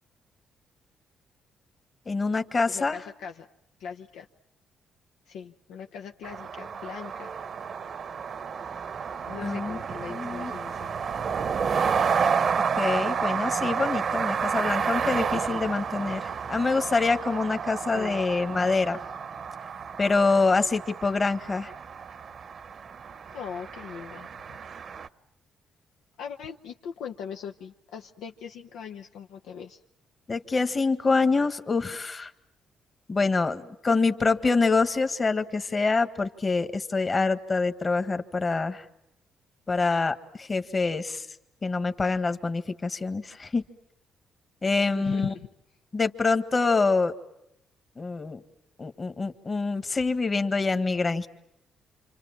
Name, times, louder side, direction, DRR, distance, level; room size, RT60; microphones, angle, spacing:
voice 1, 2.1-3.0 9.4-9.8 10.1-10.5 12.8-19.0 20.0-21.7 30.3-32.3 33.1-38.8 39.7-41.2 41.6-43.6 44.6-45.3 45.9-47.1 48.0-48.4 48.8-51.3, left 4 dB, 30° left, 9 dB, 1.7 m, -25 dB
voice 2, 2.7-3.5 3.8-4.3 5.3-7.3 9.3-10.9 17.8-18.2 23.3-24.6 26.2-29.8 44.9-45.4, left 7 dB, 85° left, 3 dB, 1.0 m, -40 dB
sound 1, 6.2-25.1, right 6 dB, 50° right, 0.9 m, -30 dB
28.5 x 26.0 x 7.4 m, 0.83 s
cardioid pair, 90°, 0 cm